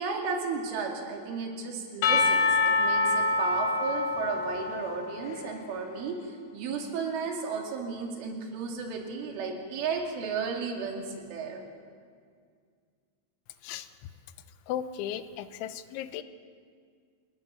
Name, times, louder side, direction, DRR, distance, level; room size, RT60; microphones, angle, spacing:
voice 1, 0.0-11.6, right 5 dB, 90° right, 1 dB, 5.1 m, -34 dB
Percussion / Church bell, 2.0-5.7, left 3 dB, 70° left, 2.4 m, -26 dB
voice 2, 14.7-16.2, left 10 dB, 85° left, 11 dB, 3.2 m, -35 dB
27.0 x 19.5 x 7.2 m, 2.1 s
omnidirectional pair, 5.4 m